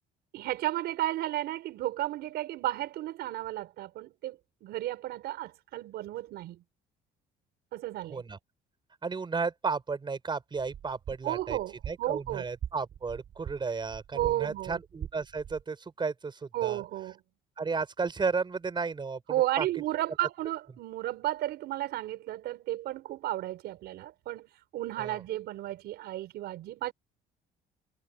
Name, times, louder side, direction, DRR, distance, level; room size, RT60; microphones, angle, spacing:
voice 1, 0.3-6.6 7.7-8.2 11.2-12.4 14.1-14.8 16.5-17.2 19.3-26.9, right 15 dB, 75° right, 4.9 m, -33 dB
voice 2, 9.0-11.6 11.9-16.8 17.6-19.7 25.0-25.2, right 4 dB, 25° right, 6.0 m, -33 dB
sound 1, 10.5-15.6, right 9 dB, 55° right, 5.5 m, -43 dB
cardioid pair, 110°, 17 cm